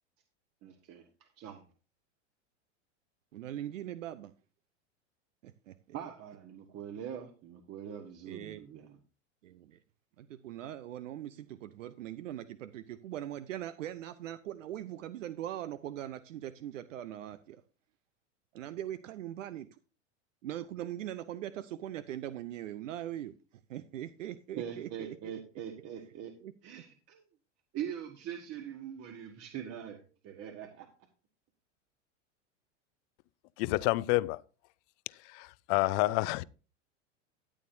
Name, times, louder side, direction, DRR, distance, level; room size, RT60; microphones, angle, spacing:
voice 1, 0.6-1.6 5.9-9.0 24.6-26.3 26.6-27.2 27.7-30.9, right 9 dB, 40° right, 1.4 m, -42 dB
voice 2, 3.3-4.3 5.4-5.7 8.2-8.6 9.4-9.8 10.2-17.6 18.5-19.7 20.4-23.3 23.7-25.3 26.4-26.5, right 12 dB, 80° right, 0.7 m, -41 dB
voice 3, 33.6-34.4 35.1-36.4, left 20 dB, 45° left, 0.6 m, -29 dB
14.0 x 8.6 x 2.7 m
hypercardioid pair, 105°, 37 cm